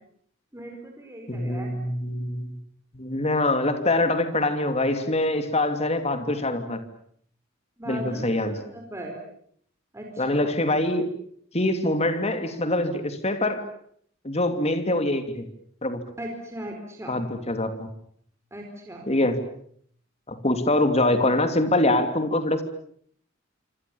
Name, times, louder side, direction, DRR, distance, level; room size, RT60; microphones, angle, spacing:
voice 1, 0.5-1.7 7.8-9.2 9.9-10.5 16.2-17.2 18.5-19.1, right 1 dB, 15° right, 2 dB, 4.6 m, -38 dB
voice 2, 1.3-2.5 2.9-6.8 7.8-8.6 10.2-11.1 11.5-13.7 14.2-15.4 15.8-16.0 17.1-17.9 19.1-19.4 20.3-22.6, left 1 dB, 30° left, 8 dB, 2.9 m, -24 dB
27.0 x 26.5 x 7.2 m, 0.64 s
head